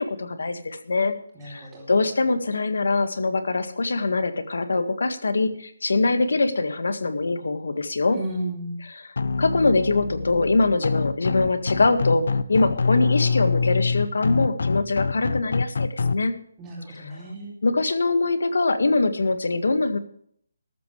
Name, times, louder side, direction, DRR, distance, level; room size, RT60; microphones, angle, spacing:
voice 1, 0.0-1.2 1.4-8.2 8.9-9.1 9.4-16.3 17.0-17.2 17.6-20.0, left 3 dB, 70° left, 9 dB, 1.8 m, -23 dB
voice 2, 1.3-1.9 8.1-8.7 16.6-17.5, right 1 dB, 10° right, -3 dB, 2.9 m, -33 dB
sound 1, 9.2-16.1, left 4 dB, 55° left, 0.6 m, -25 dB
13.5 x 13.5 x 3.3 m, 0.64 s
hypercardioid pair, 175°, 0 cm